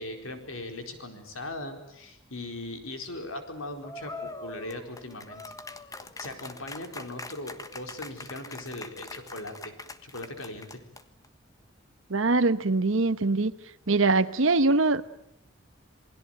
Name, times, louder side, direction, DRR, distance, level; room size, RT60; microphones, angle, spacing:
voice 1, 0.0-5.4 6.2-9.7 10.0-10.8, left 2 dB, 80° left, 6 dB, 4.5 m, -39 dB
sound 1, 3.8-11.3, left 2 dB, 15° left, 1.4 m, -43 dB
voice 2, 12.1-13.5 13.9-15.1, right 3 dB, 70° right, 11 dB, 1.1 m, -23 dB
28.0 x 21.0 x 9.1 m, 0.77 s
head